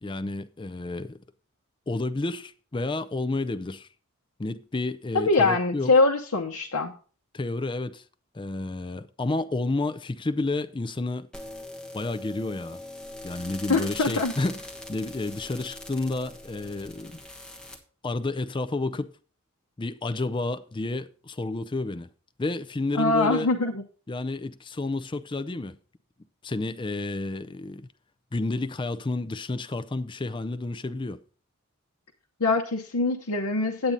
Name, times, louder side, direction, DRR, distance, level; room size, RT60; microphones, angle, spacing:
voice 1, 0.0-1.2 1.9-3.9 4.4-5.9 7.3-8.0 8.3-11.3 11.9-12.8 13.2-14.6 14.9-17.2 18.0-19.1 19.8-22.1 22.4-23.5 24.1-25.8 26.4-27.9 28.3-31.2, left 2 dB, 20° left, 0.4 m, -30 dB
voice 2, 5.1-6.9 13.7-14.3 22.9-23.8 32.4-33.9, left 3 dB, 80° left, 0.9 m, -23 dB
sound 1, 11.3-17.8, left 1 dB, 5° left, 1.3 m, -41 dB
8.9 x 8.6 x 3.9 m
head